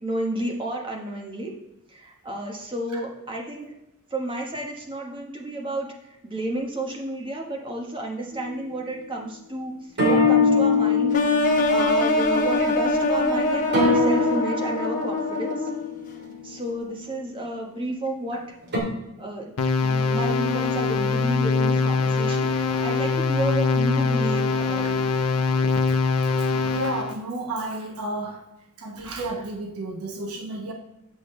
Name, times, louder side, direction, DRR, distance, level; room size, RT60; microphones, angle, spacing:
voice 1, 0.0-1.5 1.9-3.7 4.1-11.2 11.7-15.7 16.4-18.6 19.2-25.0, right 1 dB, 25° right, 0 dB, 1.3 m, -31 dB
sound 1, 8.3-8.8 10.0-17.1 18.7-18.8, left 3 dB, 50° right, 2.2 m, -24 dB
sound 2, 11.1-16.0, left 2 dB, 40° left, 1.0 m, -24 dB
sound 3, 19.6-27.1, left 4 dB, 75° left, 0.6 m, -23 dB
voice 2, 26.6-28.4 28.8-30.7, right 2 dB, 80° right, 2 dB, 1.1 m, -32 dB
7.7 x 6.6 x 3.2 m, 0.89 s
head